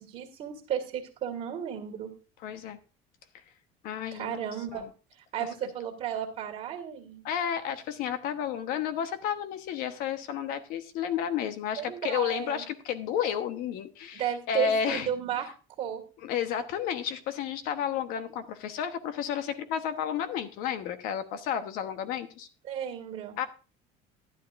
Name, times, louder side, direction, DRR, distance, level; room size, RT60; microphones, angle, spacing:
voice 1, 0.0-2.1 4.1-4.8 5.3-7.2 11.8-12.6 14.2-15.5 15.8-16.0 22.7-23.4, right 9 dB, 45° right, -1 dB, 2.0 m, -33 dB
voice 2, 2.4-2.8 3.8-4.4 4.7-4.9 5.4-5.7 7.2-15.1 16.2-22.5 23.4-23.5, left 8 dB, 65° left, 9 dB, 1.2 m, -32 dB
12.0 x 11.0 x 2.6 m, 0.34 s
cardioid pair, 160°, 16 cm